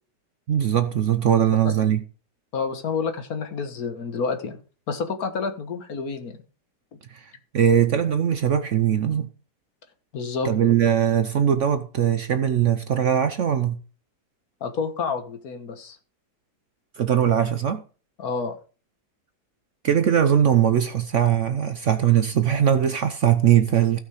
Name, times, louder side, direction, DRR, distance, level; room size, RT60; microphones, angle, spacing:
voice 1, 0.5-2.0 7.1-9.3 10.4-13.8 17.0-17.8 19.8-24.0, right 9 dB, 60° right, 0.9 m, -20 dB
voice 2, 2.5-4.6 4.9-6.4 10.1-10.5 14.6-16.0 18.2-18.6, left 5 dB, 60° left, 1.7 m, -29 dB
15.5 x 5.7 x 4.9 m
omnidirectional pair, 1.8 m